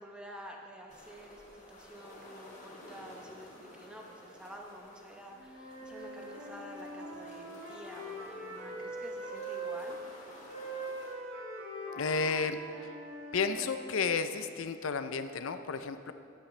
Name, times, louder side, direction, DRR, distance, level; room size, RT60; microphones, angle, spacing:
voice 1, 0.0-10.2, equal, 5° right, 0 dB, 0.9 m, -49 dB
sound 1, 0.9-11.1, left 1 dB, 35° left, 1.9 m, -53 dB
Wind instrument woodwind instrument, 5.3-9.8 10.5-14.1, right 1 dB, 85° right, 2.9 m, -42 dB
voice 2, 11.9-12.6 13.3-16.1, left 5 dB, 80° left, 10 dB, 0.5 m, -32 dB
12.5 x 10.5 x 3.3 m, 2.5 s
head